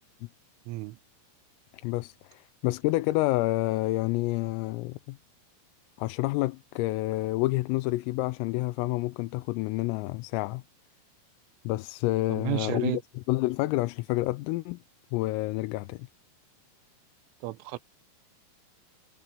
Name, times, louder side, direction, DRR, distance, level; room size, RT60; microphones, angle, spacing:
voice 1, 0.7-1.0 12.3-13.0 17.4-17.8, right 19 dB, 80° right, 3.2 m, -32 dB
voice 2, 1.8-5.2 6.0-10.6 11.7-14.8 15.1-16.1, left 19 dB, 90° left, 3.4 m, -29 dB
omnidirectional pair, 5.9 m